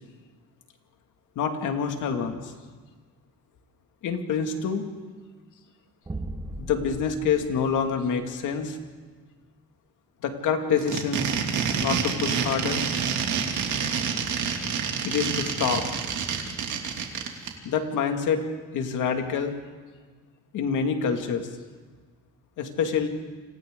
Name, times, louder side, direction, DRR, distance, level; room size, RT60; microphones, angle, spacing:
voice 1, 1.4-2.5 4.0-4.9 6.6-8.8 10.2-11.3 11.8-12.8 15.0-15.8 17.6-18.5 18.7-19.6 20.5-21.5 22.6-23.1, left 6 dB, 80° left, 4 dB, 2.4 m, -26 dB
sound 1, 6.1-8.7, right 2 dB, 15° right, 1.3 m, -38 dB
sound 2, 10.8-17.5, right 6 dB, 70° right, 2.8 m, -27 dB
29.0 x 25.5 x 3.9 m, 1.5 s
cardioid pair, 90°, 30 cm